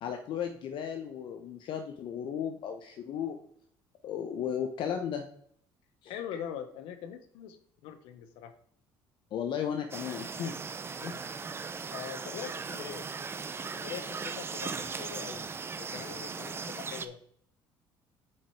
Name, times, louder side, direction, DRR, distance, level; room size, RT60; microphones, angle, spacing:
voice 1, 0.0-3.4 4.0-5.2 6.0-6.1 9.3-10.5, left 8 dB, 60° left, 6 dB, 0.9 m, -35 dB
voice 2, 6.1-7.6 7.8-8.5 11.0-11.3 11.9-13.1 13.6-15.5 15.8-17.2, left 9 dB, 90° left, 9 dB, 1.0 m, -42 dB
sound 1, 9.9-17.1, right 5 dB, 25° right, 0.6 m, -38 dB
7.3 x 4.9 x 4.7 m, 0.64 s
cardioid pair, 120°, 9 cm